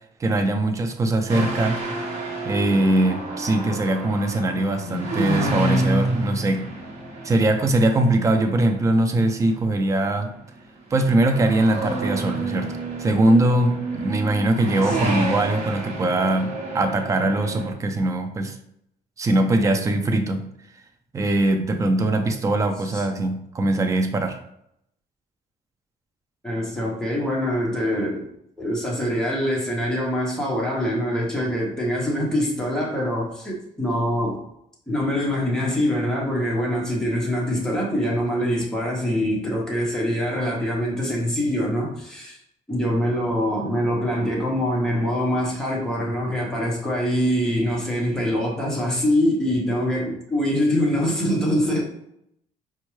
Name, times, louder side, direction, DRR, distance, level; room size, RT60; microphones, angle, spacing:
voice 1, 0.2-1.8 2.5-6.7 7.2-10.3 10.9-12.7 13.0-18.6 19.2-20.5 21.1-24.4, right 2 dB, 20° right, 6 dB, 0.4 m, -21 dB
sound 1, 1.3-9.6 10.2-10.6 10.9-17.7, right 2 dB, 45° right, 1.0 m, -29 dB
voice 2, 14.8-15.2 22.9-23.0 26.4-28.3 28.6-34.4 34.9-42.4 42.7-51.8, equal, 5° left, -4 dB, 0.9 m, -24 dB
4.3 x 2.3 x 3.1 m, 0.76 s
cardioid pair, 145°, 16 cm